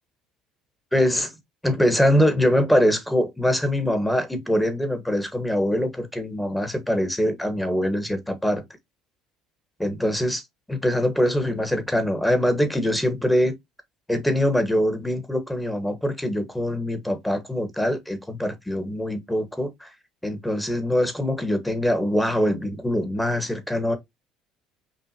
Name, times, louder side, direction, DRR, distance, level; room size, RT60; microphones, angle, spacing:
voice 1, 0.9-1.3 1.6-8.6 9.8-10.4 10.7-13.6 14.1-19.9 20.2-23.9, equal, 5° left, 1.3 m, -23 dB
5.4 x 2.6 x 2.8 m
hypercardioid pair, 65°, 0 cm